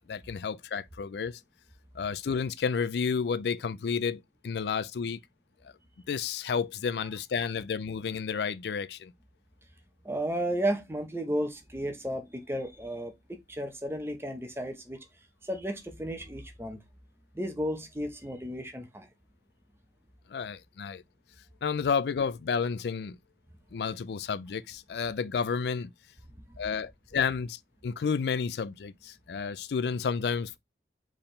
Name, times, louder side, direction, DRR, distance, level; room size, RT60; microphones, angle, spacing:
voice 1, 0.1-1.4 1.9-5.2 6.1-9.1 20.3-21.0 21.6-23.2 23.7-25.9 26.6-30.6, left 6 dB, 70° left, 0.4 m, -31 dB
voice 2, 10.0-15.0 15.4-16.8 17.3-19.1, equal, 15° right, 0.9 m, -33 dB
4.5 x 3.6 x 3.2 m
head